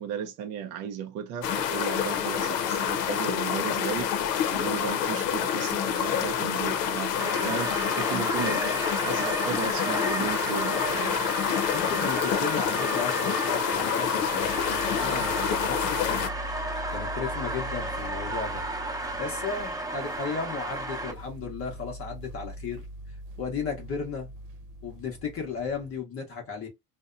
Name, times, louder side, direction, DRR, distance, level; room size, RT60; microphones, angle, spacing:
voice 1, 0.0-11.2, right 8 dB, 40° right, 0.4 m, -35 dB
sound 1, 1.4-16.3, left 8 dB, 85° left, 0.7 m, -28 dB
sound 2, 7.2-21.1, right 1 dB, 10° right, 0.7 m, -33 dB
voice 2, 11.7-16.5 16.9-18.6 19.2-22.8 23.4-24.3 24.8-26.7, left 5 dB, 30° left, 0.7 m, -35 dB
sound 3, 14.4-26.0, equal, 75° right, 0.8 m, -42 dB
2.6 x 2.1 x 2.4 m
supercardioid pair, 120°, 47 cm